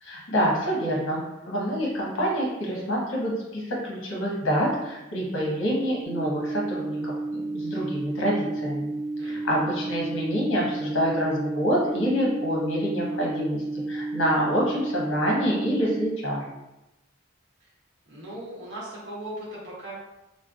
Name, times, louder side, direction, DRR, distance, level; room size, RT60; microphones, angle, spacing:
voice 1, 0.0-1.2 1.5-7.0 7.3-8.9 9.2-13.6 13.9-16.4, equal, 85° left, -4 dB, 1.0 m, -26 dB
sound 1, 6.0-16.0, right 2 dB, 35° right, 0.9 m, -32 dB
voice 2, 18.1-19.9, right 1 dB, 60° right, -6 dB, 1.0 m, -38 dB
3.2 x 2.1 x 2.4 m, 0.96 s
head